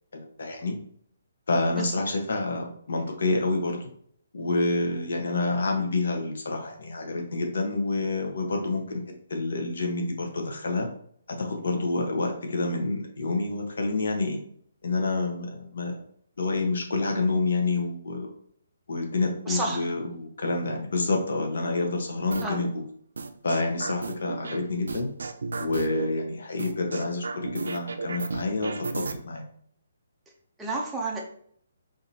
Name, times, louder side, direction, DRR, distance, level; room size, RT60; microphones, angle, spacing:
voice 1, 0.1-0.7 1.5-3.9 4.3-9.0 9.3-10.9 11.4-14.4 14.8-16.0 16.4-18.3 18.9-22.7 23.4-25.1 25.6-29.4, left 2 dB, 70° left, 2 dB, 1.1 m, -28 dB
voice 2, 19.5-19.9 22.4-22.6 30.6-31.2, right 2 dB, 5° right, -3 dB, 0.5 m, -30 dB
sound 1, 22.3-22.6 23.2-24.6 24.9-26.1 26.6-29.1, right 4 dB, 85° right, 0.4 m, -33 dB
5.0 x 2.7 x 2.8 m, 0.63 s
hypercardioid pair, 170°, 0 cm